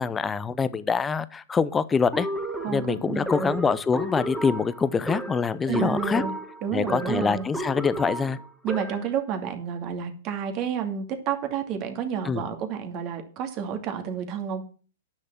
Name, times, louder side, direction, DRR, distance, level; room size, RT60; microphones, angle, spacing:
voice 1, 0.0-2.3 2.7-6.2 6.7-8.4 12.2-12.4, left 5 dB, 15° left, 16 dB, 0.7 m, -25 dB
sound 1, 2.1-9.2, right 1 dB, 5° right, 1.8 m, -33 dB
voice 2, 2.6-3.6 5.7-6.3 6.6-7.5 8.6-14.6, right 8 dB, 40° right, 5 dB, 2.5 m, -30 dB
10.0 x 6.6 x 7.3 m, 0.39 s
hypercardioid pair, 120°, 0 cm